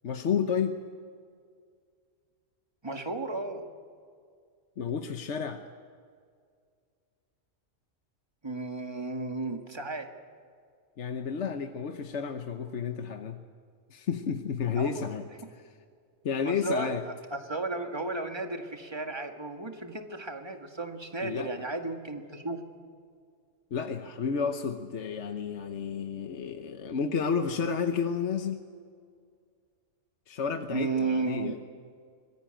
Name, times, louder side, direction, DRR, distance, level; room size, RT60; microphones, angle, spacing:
voice 1, 0.0-0.8 4.8-5.6 11.0-13.4 13.9-15.3 15.5-15.6 16.2-17.0 21.2-21.5 23.7-28.6 30.3-31.6, left 6 dB, 60° left, 6 dB, 1.2 m, -31 dB
voice 2, 2.8-3.6 8.4-10.1 14.8-15.0 16.4-22.6 30.7-31.6, right 3 dB, 20° right, 4 dB, 1.8 m, -34 dB
25.0 x 20.5 x 9.0 m, 2.2 s
omnidirectional pair, 1.4 m